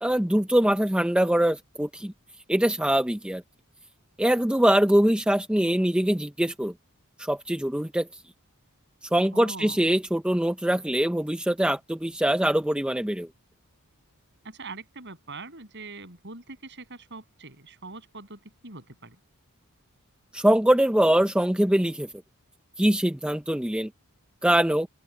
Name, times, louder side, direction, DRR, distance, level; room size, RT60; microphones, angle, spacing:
voice 1, 0.0-2.1 2.5-3.4 4.2-6.7 7.2-8.1 9.1-13.3 20.3-22.1 22.8-23.9 24.4-24.9, right 1 dB, 5° right, 0.5 m, -23 dB
voice 2, 9.3-9.8 14.4-19.2, right 3 dB, 50° right, 8.0 m, -42 dB
open air
head